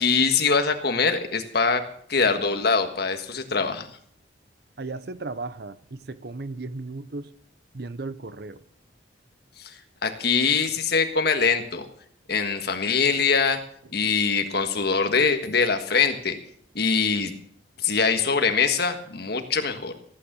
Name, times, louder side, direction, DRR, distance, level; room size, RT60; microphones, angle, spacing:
voice 1, 0.0-1.8 2.1-3.9 9.6-9.8 10.0-11.9 12.3-13.6 13.9-16.4 16.8-17.3 17.8-19.9, left 5 dB, 55° left, 1.6 m, -23 dB
voice 2, 4.8-7.3 7.7-8.6, right 3 dB, 55° right, 0.8 m, -35 dB
16.0 x 9.1 x 6.9 m
head